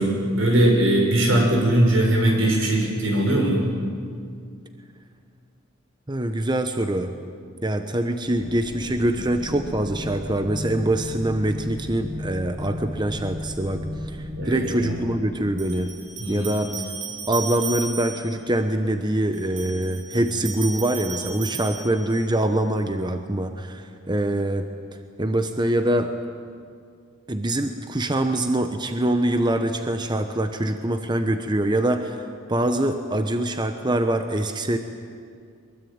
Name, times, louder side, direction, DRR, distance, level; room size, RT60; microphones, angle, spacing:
voice 1, 0.0-3.7 14.3-15.0 16.2-16.5, right 1 dB, 85° right, 1 dB, 6.4 m, -20 dB
voice 2, 6.1-7.1 7.6-15.9 16.3-16.7 17.3-24.7 25.2-26.1 27.3-34.8, right 1 dB, 20° right, 7 dB, 1.0 m, -24 dB
sound 1, 8.3-16.5, left 1 dB, 5° right, 4.3 m, -35 dB
sound 2, 14.3-14.4 15.6-18.4 19.3-22.4, right 6 dB, 65° right, 5.4 m, -35 dB
23.0 x 22.5 x 8.9 m, 2.3 s
head